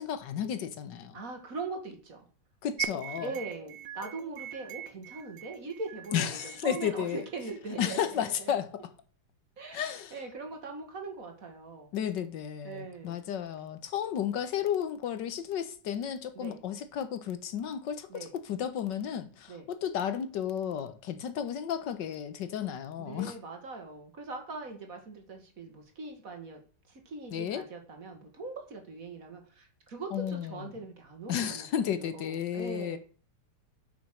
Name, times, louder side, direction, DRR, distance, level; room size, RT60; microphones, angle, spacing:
voice 1, 0.0-1.2 2.6-3.3 6.1-7.2 7.8-8.6 9.7-10.1 11.9-23.3 27.3-27.6 30.1-30.7 31.3-33.0, left 9 dB, 80° left, 1.6 m, -33 dB
voice 2, 1.1-2.3 2.9-8.5 9.6-9.8 10.1-11.9 12.6-13.2 16.4-16.6 18.1-18.3 19.5-19.7 23.0-26.6 26.9-33.0, right 3 dB, 50° right, 2.2 m, -41 dB
sound 1, 2.8-7.8, right 12 dB, 80° right, 1.5 m, -42 dB
9.5 x 6.3 x 6.3 m
omnidirectional pair, 1.9 m